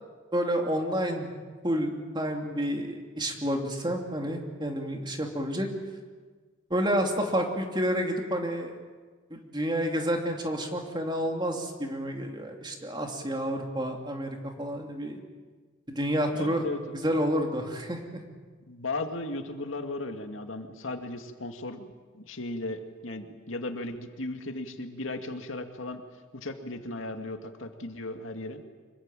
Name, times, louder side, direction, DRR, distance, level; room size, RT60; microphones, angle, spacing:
voice 1, 0.3-1.3 1.6-5.7 6.7-8.7 9.3-15.2 15.9-16.6 17.0-18.2, equal, 20° right, 2 dB, 2.9 m, -29 dB
voice 2, 16.3-17.0 18.7-26.0 26.3-28.6, left 2 dB, 80° left, 5 dB, 2.2 m, -36 dB
25.5 x 22.5 x 9.0 m, 1.4 s
head